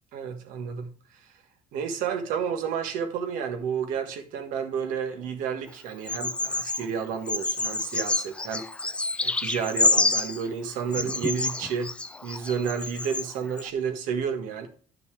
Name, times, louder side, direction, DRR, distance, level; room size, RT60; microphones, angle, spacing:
voice 1, 0.1-0.9 1.7-8.6 9.2-11.9 12.2-14.7, right 7 dB, 85° right, 1.6 m, -31 dB
Bird vocalization bird call bird song, 6.1-6.8 7.3-10.4 10.9-13.3 13.6-13.7, left 3 dB, 10° left, 0.3 m, -27 dB
10.5 x 6.7 x 3.4 m
cardioid pair, 165°, 13 cm